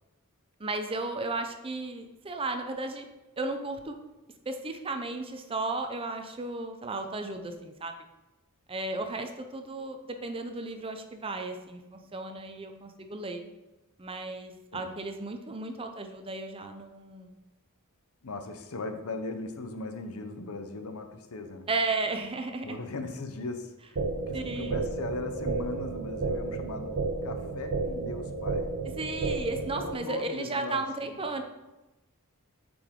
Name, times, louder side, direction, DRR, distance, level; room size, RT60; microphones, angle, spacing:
voice 1, 0.6-3.1 3.4-4.0 4.5-7.9 8.7-13.4 14.0-17.4 21.7-22.8 24.3-24.8 29.0-31.4, right 3 dB, 25° right, 6 dB, 0.6 m, -34 dB
voice 2, 18.2-21.7 22.6-26.9 27.2-28.7 29.8-31.2, left 3 dB, 80° left, 7 dB, 0.8 m, -38 dB
sound 1, 24.0-30.0, right 3 dB, 65° right, 0.7 m, -32 dB
8.3 x 5.1 x 3.7 m, 1.0 s
head